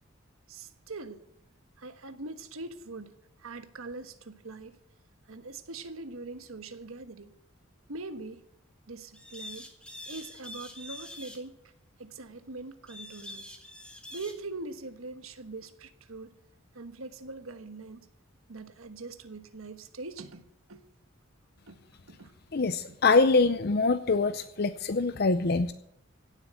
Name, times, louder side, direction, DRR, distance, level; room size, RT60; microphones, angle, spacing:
voice 1, 0.5-1.2 1.8-3.1 3.4-4.8 5.3-7.3 7.9-8.4 8.9-9.7 10.1-11.6 12.0-13.5 14.1-16.4 16.7-18.1 18.5-20.8 21.7-21.8 22.1-22.3 22.9-23.0, right 3 dB, 85° right, 1.3 m, -42 dB
sound 1, 9.1-11.4 12.9-14.3, left 1 dB, 5° left, 1.8 m, -45 dB
voice 2, 22.5-25.7, left 3 dB, 50° left, 0.6 m, -24 dB
16.5 x 7.8 x 9.0 m
head